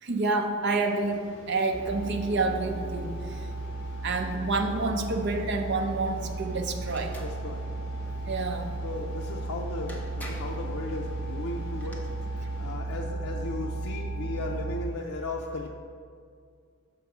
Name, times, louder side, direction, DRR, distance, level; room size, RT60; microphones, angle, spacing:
voice 1, 0.0-3.5 4.0-7.2 8.1-8.7, right 3 dB, 55° right, 4 dB, 0.6 m, -28 dB
sound 1, 0.7-12.7, equal, 55° left, 1.6 m, -50 dB
sound 2, 1.7-14.8, right 2 dB, 35° right, 1.1 m, -35 dB
sound 3, 6.8-7.3 9.4-9.5 9.9-10.6 11.6-12.0, left 1 dB, 10° left, 0.8 m, -44 dB
voice 2, 7.2-7.7 8.8-12.1 12.6-15.7, left 2 dB, 80° left, 0 dB, 0.5 m, -36 dB
6.5 x 4.5 x 6.0 m, 2.2 s
head